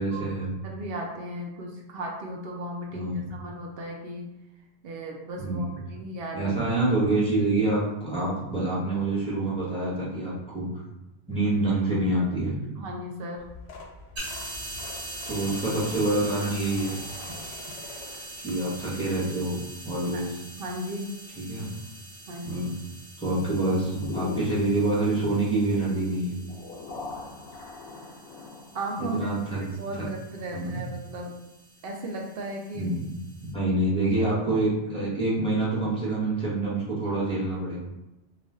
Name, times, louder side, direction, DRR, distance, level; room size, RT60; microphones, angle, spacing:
voice 1, 0.0-0.5 2.9-3.3 5.4-5.6 6.3-10.7 11.3-12.6 15.3-16.9 18.4-20.3 21.4-21.7 22.4-22.7 23.2-26.3 29.1-29.7 30.0-30.1 30.5-30.8 32.7-33.1 33.5-37.8, right 2 dB, 5° left, -8 dB, 0.8 m, -26 dB
voice 2, 0.6-4.3 4.8-6.5 8.1-8.3 12.8-13.4 20.1-20.2 20.6-21.1 22.3-22.7 28.7-29.3 29.6-31.4 31.8-32.9, right 1 dB, 65° right, 0 dB, 0.7 m, -36 dB
sound 1, 13.3-19.0 19.4-19.7 20.9-21.0 21.3-21.4 21.7-21.9, left 3 dB, 85° left, 0.9 m, -45 dB
sound 2, 14.2-33.5, right 1 dB, 35° right, 0.9 m, -43 dB
sound 3, 23.6-28.8, left 4 dB, 65° left, 0.7 m, -39 dB
2.4 x 2.4 x 3.2 m, 0.95 s
omnidirectional pair, 1.2 m